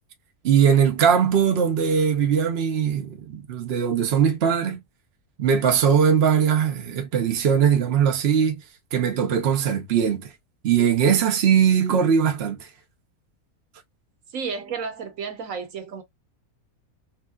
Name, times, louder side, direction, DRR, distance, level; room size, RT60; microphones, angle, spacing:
voice 1, 0.4-4.8 5.4-8.6 8.9-10.3 10.6-12.7, right 7 dB, 55° right, 0.8 m, -20 dB
voice 2, 14.3-16.0, right 5 dB, 70° right, 1.2 m, -32 dB
3.2 x 2.7 x 2.3 m
omnidirectional pair, 1.5 m